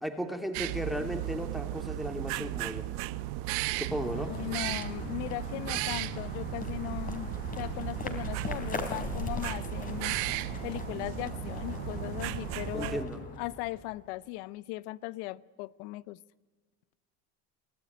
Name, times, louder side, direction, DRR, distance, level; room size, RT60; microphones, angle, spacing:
voice 1, 0.0-2.9 3.8-4.3 12.7-13.2, equal, ahead, 6 dB, 2.5 m, -35 dB
sound 1, 0.5-13.0, right 16 dB, 70° right, 1.0 m, -36 dB
sound 2, 3.3-14.1, left 3 dB, 25° left, 3.6 m, -40 dB
voice 2, 4.1-7.3 7.6-10.1 10.6-13.1 13.4-16.2, left 18 dB, 75° left, 20 dB, 0.8 m, -38 dB
25.5 x 16.5 x 9.3 m, 1.4 s
supercardioid pair, 120°, 34 cm